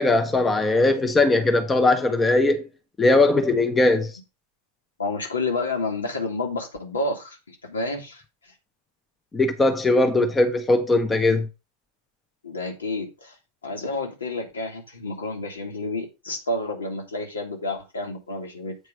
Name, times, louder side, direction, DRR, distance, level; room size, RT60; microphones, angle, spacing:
voice 1, 0.0-2.7 3.0-4.1 9.3-11.5, left 2 dB, 15° left, 1.0 m, -20 dB
voice 2, 5.0-8.5 12.4-13.4 13.6-18.8, left 2 dB, 70° left, 2.1 m, -30 dB
8.3 x 4.7 x 4.8 m
figure-of-eight pair, 90°, 0 cm